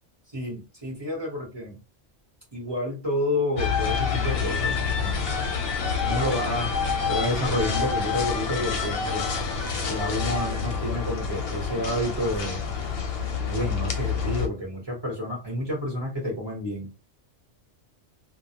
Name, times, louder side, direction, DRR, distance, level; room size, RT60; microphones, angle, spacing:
voice 1, 0.3-1.8 2.5-5.3 6.0-6.7 7.1-9.3 9.9-12.7 13.5-16.9, left 1 dB, 25° right, -3 dB, 0.9 m, -29 dB
sound 1, 3.6-14.5, left 6 dB, 60° left, 0.7 m, -27 dB
2.2 x 2.1 x 2.8 m, 0.28 s
omnidirectional pair, 1.2 m